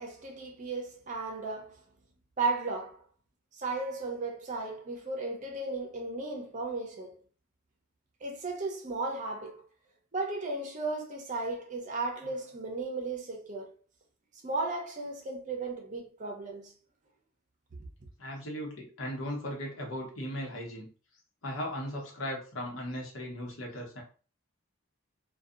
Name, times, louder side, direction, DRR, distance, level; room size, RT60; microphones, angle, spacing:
voice 1, 0.0-1.8 2.4-3.0 3.5-7.2 8.2-9.6 10.1-13.7 14.4-16.7, right 3 dB, 40° right, 0.6 m, -35 dB
voice 2, 18.2-20.9 21.4-24.0, equal, 80° left, 0.9 m, -37 dB
2.7 x 2.3 x 2.4 m
head